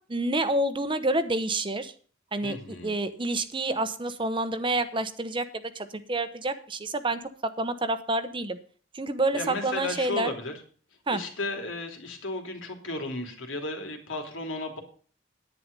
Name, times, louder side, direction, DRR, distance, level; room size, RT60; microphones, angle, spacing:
voice 1, 0.1-1.9 2.3-2.6 2.8-8.6 8.9-10.3 11.1-11.2, right 2 dB, 25° right, 11 dB, 0.9 m, -28 dB
voice 2, 2.4-2.9 9.3-10.5 11.1-14.8, left 2 dB, 80° left, 3 dB, 3.1 m, -34 dB
10.5 x 9.6 x 5.3 m, 0.42 s
head